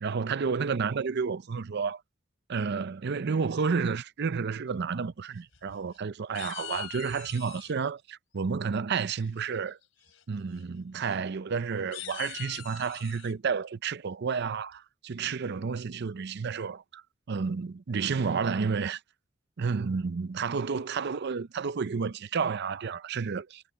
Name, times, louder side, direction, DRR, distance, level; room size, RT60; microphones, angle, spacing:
voice 1, 0.0-2.0 2.5-9.8 10.3-17.0 17.3-19.0 19.6-23.6, right 5 dB, 55° right, 0.5 m, -31 dB
sound 1, 5.4-6.0 6.3-7.7 9.2-9.6 10.0-10.2 10.5-10.6 11.0-11.1 11.7-13.3, left 13 dB, 80° left, 3.1 m, -43 dB
head